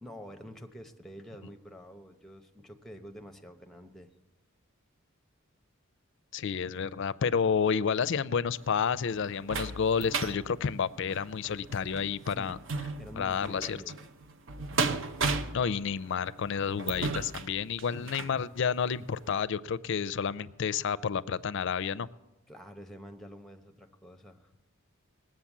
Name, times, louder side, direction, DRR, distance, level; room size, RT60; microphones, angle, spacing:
voice 1, 0.0-4.1 12.2-12.6 13.0-14.0 17.9-18.4 22.5-24.5, equal, ahead, 6 dB, 0.8 m, -47 dB
voice 2, 6.3-12.6 13.2-13.8 15.5-22.1, left 6 dB, 60° left, 15 dB, 0.4 m, -30 dB
sound 1, 8.5-18.4 18.9-19.1 19.4-19.5, right 4 dB, 60° right, 0.7 m, -36 dB
18.5 x 7.8 x 7.2 m, 1.0 s
head